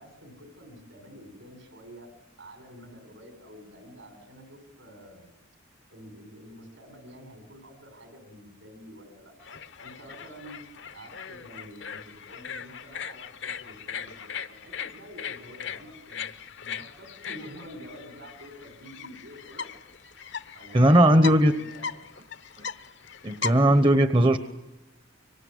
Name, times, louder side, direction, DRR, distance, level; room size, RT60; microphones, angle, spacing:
voice 1, 0.0-2.1 2.4-5.3 5.9-10.6 10.9-16.3 16.6-19.7 20.5-22.1 23.6-23.9, equal, 75° right, 6 dB, 6.6 m, -48 dB
sound 1, 9.4-23.8, left 6 dB, 60° left, 0.9 m, -39 dB
voice 2, 20.7-21.5 23.2-24.4, right 1 dB, 25° right, 11 dB, 0.9 m, -18 dB
25.0 x 24.0 x 9.5 m, 0.99 s
head